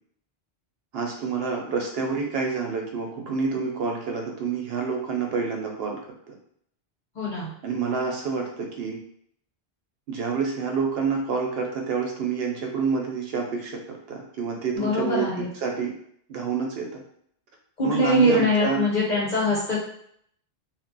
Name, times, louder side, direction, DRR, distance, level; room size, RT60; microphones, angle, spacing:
voice 1, 0.9-6.0 6.3-6.4 7.6-9.0 10.1-15.9 16.3-17.0 17.8-18.8, right 5 dB, 70° right, 1 dB, 0.7 m, -28 dB
voice 2, 7.1-7.5 14.7-15.5 17.8-19.8, left 1 dB, 45° left, -6 dB, 1.1 m, -22 dB
2.2 x 2.1 x 3.8 m, 0.67 s
omnidirectional pair, 1.1 m